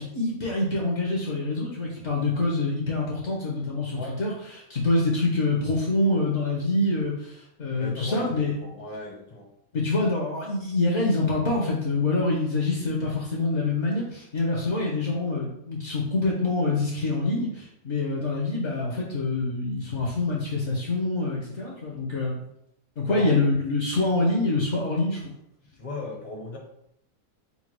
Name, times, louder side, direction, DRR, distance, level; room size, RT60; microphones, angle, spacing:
voice 1, 0.0-8.7 9.7-22.4 23.0-25.3, left 2 dB, 55° left, -3 dB, 1.1 m, -26 dB
voice 2, 7.7-9.5 23.0-23.3 25.8-26.6, left 2 dB, 30° left, -1 dB, 0.8 m, -37 dB
4.3 x 2.2 x 4.5 m, 0.79 s
omnidirectional pair, 1.5 m